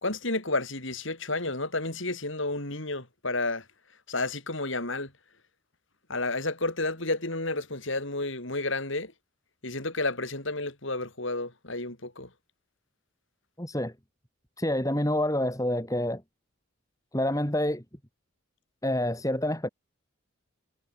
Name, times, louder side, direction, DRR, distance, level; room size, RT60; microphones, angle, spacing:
voice 1, 0.0-3.6 4.1-5.1 6.1-9.1 9.6-12.3, left 2 dB, 65° left, 4.8 m, -31 dB
voice 2, 13.6-13.9 14.6-16.2 17.1-17.8 18.8-19.7, left 1 dB, 15° left, 4.3 m, -27 dB
head